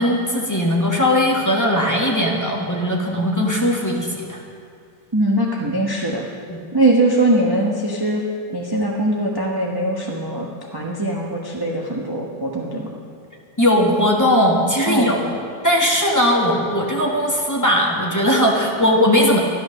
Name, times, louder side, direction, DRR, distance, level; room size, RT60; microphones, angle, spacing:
voice 1, 0.0-4.4 6.5-6.6 13.6-15.4 15.6-19.4, equal, 10° left, -3 dB, 1.4 m, -18 dB
voice 2, 5.1-6.3 6.7-8.2 8.5-12.9 14.9-15.1, right 1 dB, 15° right, -2 dB, 0.8 m, -21 dB
13.0 x 11.5 x 6.5 m, 2.3 s
omnidirectional pair, 2.1 m